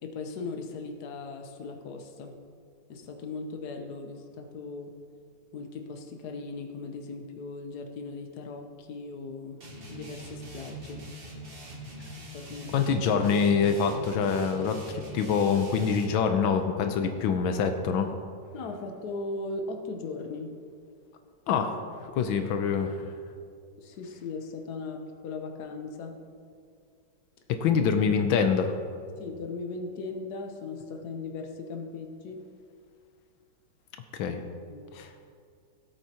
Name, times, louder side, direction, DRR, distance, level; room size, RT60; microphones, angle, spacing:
voice 1, 0.0-2.3 2.9-4.9 5.5-9.6 9.9-11.0 12.3-12.9 18.5-20.5 23.8-26.2 29.2-32.4 34.2-34.4 34.7-34.9, left 3 dB, 60° left, 4 dB, 1.4 m, -38 dB
sound 1, 9.6-16.2, right 1 dB, 30° right, 1.4 m, -43 dB
voice 2, 12.7-18.1 21.5-21.8 22.1-23.0 27.5-28.8 34.2-34.4 34.9-35.1, left 6 dB, 85° left, 6 dB, 1.5 m, -25 dB
17.5 x 8.3 x 2.9 m, 2.2 s
omnidirectional pair, 2.1 m